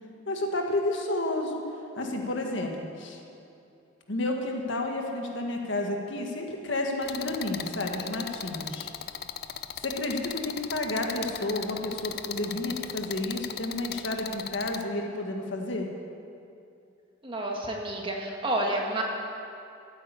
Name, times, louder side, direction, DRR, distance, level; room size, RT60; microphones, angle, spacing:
voice 1, 0.3-1.6 2.0-3.2 4.1-8.9 9.8-15.9, left 2 dB, 70° left, 2 dB, 1.7 m, -31 dB
sound 1, 7.0-14.8, left 9 dB, 50° left, 0.5 m, -37 dB
voice 2, 17.2-19.0, right 1 dB, 25° right, 0 dB, 1.8 m, -30 dB
14.0 x 9.2 x 8.2 m, 2.5 s
head